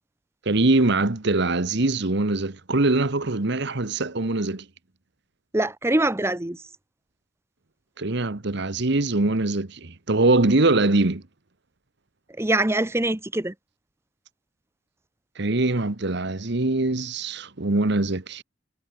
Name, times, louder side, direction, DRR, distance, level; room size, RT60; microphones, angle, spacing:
voice 1, 0.4-4.6 8.0-11.2 15.4-18.4, right 2 dB, 60° right, 1.3 m, -23 dB
voice 2, 5.5-6.6 12.4-13.5, right 1 dB, 15° right, 0.9 m, -23 dB
head